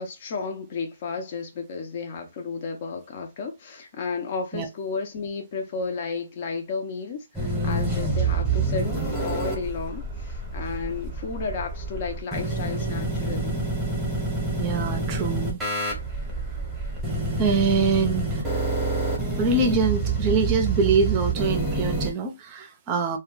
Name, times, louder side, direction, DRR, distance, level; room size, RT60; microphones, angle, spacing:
voice 1, 0.0-8.9 9.2-13.6 15.1-15.2, left 4 dB, 40° left, 0.7 m, -33 dB
sound 1, 7.3-22.1, right 3 dB, 5° right, 1.0 m, -27 dB
voice 2, 14.6-15.6 17.4-18.4 19.4-23.2, right 4 dB, 25° right, 0.6 m, -24 dB
2.2 x 2.2 x 3.8 m
hypercardioid pair, 155°, 0 cm